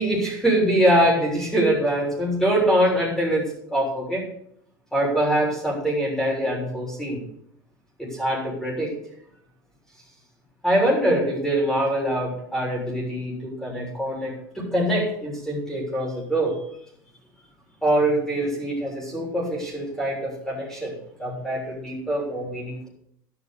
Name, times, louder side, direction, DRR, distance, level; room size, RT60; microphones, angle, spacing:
voice 1, 0.0-3.4 3.7-4.2 4.9-7.2 8.0-8.9 10.6-13.3 13.6-16.5 17.8-20.9 21.2-22.9, right 1 dB, 5° left, -3 dB, 6.6 m, -23 dB
12.0 x 10.0 x 6.9 m, 0.72 s
hypercardioid pair, 95°, 11 cm